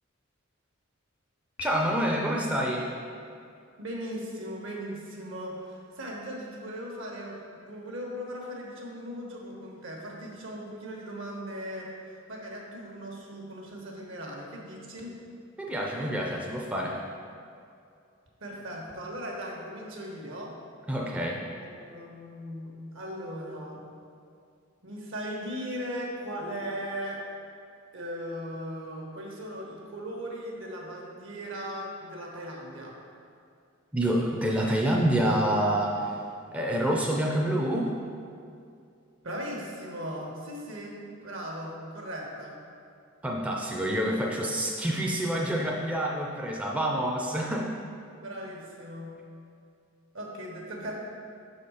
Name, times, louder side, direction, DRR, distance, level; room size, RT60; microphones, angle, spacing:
Piano, 1.6-2.5, left 4 dB, 75° left, 0.6 m, -43 dB
voice 1, 1.6-2.9 15.6-17.0 20.9-21.4 33.9-36.0 36.5-37.9 43.2-47.7, right 1 dB, 5° right, -2 dB, 0.5 m, -27 dB
voice 2, 3.8-15.1 18.4-20.5 21.6-23.9 24.8-27.2 27.9-33.0 39.2-42.5 48.2-49.2 50.1-50.9, equal, 65° right, -1 dB, 1.1 m, -38 dB
6.2 x 4.2 x 4.9 m, 2.4 s
head